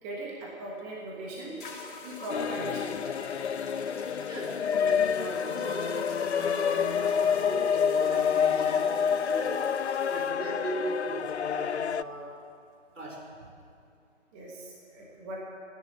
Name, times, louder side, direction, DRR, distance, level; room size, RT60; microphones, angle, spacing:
voice 1, 0.0-1.6 2.0-3.0 14.3-15.4, right 1 dB, 10° right, -3 dB, 1.3 m, -39 dB
sound 1, 0.8-0.9 1.6-10.3, left 4 dB, 40° left, 2.5 m, -43 dB
sound 2, 2.3-12.0, left 7 dB, 65° left, 0.5 m, -28 dB
voice 2, 3.9-9.7 10.1-12.4 12.9-13.3, right 2 dB, 85° right, 0 dB, 4.9 m, -38 dB
14.5 x 9.9 x 9.1 m, 2.3 s
figure-of-eight pair, 155°, 37 cm